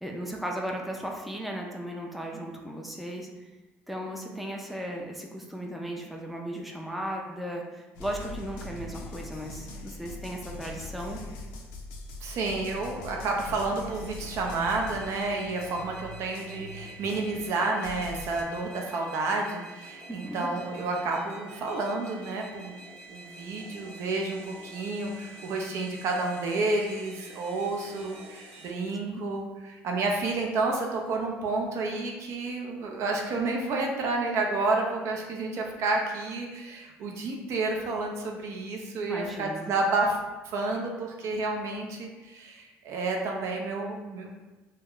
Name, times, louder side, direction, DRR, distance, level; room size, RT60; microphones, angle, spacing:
voice 1, 0.0-3.3 3.9-11.2 20.1-20.5 29.0-29.2 39.0-39.7, right 1 dB, ahead, 0 dB, 0.4 m, -36 dB
sound 1, 7.9-17.5 17.8-18.4, left 2 dB, 90° left, 0.4 m, -42 dB
voice 2, 12.2-22.7 23.1-40.2 40.5-44.3, right 3 dB, 60° right, 1 dB, 0.4 m, -30 dB
sound 2, 13.9-28.7, right 2 dB, 85° right, 0.8 m, -48 dB
2.2 x 2.1 x 3.5 m, 1.1 s
supercardioid pair, 95°, 5 cm